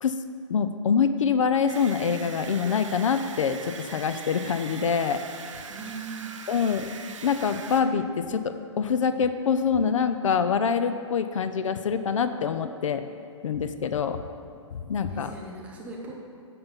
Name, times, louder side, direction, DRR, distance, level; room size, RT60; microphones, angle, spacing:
voice 1, 0.5-5.2 6.5-6.9 7.2-13.0 13.4-14.2 14.7-15.3, left 6 dB, 75° left, 10 dB, 0.5 m, -25 dB
sound 1, 1.7-7.8, right 5 dB, 70° right, 0.8 m, -41 dB
voice 2, 5.7-6.4 15.1-16.1, right 4 dB, 10° right, -3 dB, 0.8 m, -39 dB
7.8 x 5.7 x 5.2 m, 2.3 s
hypercardioid pair, 160°, 17 cm